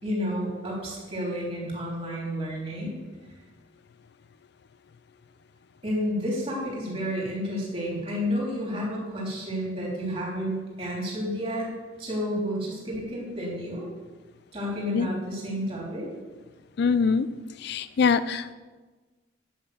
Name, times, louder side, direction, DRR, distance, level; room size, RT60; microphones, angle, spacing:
voice 1, 0.0-3.0 5.8-11.7 12.0-13.9 14.5-16.1, equal, 30° right, -4 dB, 3.4 m, -30 dB
voice 2, 16.8-17.3 17.6-18.5, left 5 dB, 60° left, 14 dB, 0.4 m, -23 dB
10.0 x 5.7 x 7.0 m, 1.3 s
head